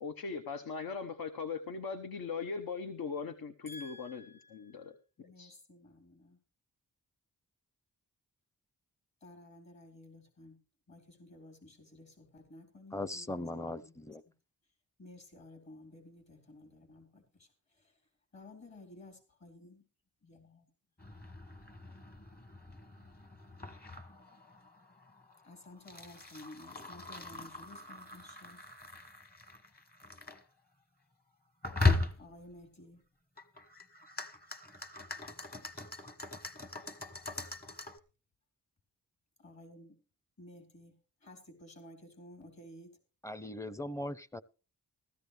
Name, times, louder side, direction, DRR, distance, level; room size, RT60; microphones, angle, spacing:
voice 1, 0.0-4.2 4.5-5.5, left 5 dB, 80° left, 1.1 m, -40 dB
voice 2, 3.7-6.4 9.2-10.6 10.9-13.3 13.8-13.9 15.0-18.0 18.3-19.9 20.2-20.7 21.1-21.3 25.4-28.6 32.1-33.0 39.4-40.0 40.4-42.9, left 1 dB, 50° left, 4.0 m, -54 dB
voice 3, 12.9-14.2 43.2-44.4, left 1 dB, 10° left, 0.6 m, -39 dB
sound 1, 21.0-30.4 31.6-32.5 33.4-38.0, left 3 dB, 25° left, 1.3 m, -38 dB
15.5 x 14.0 x 3.4 m
cardioid pair, 85°, 35 cm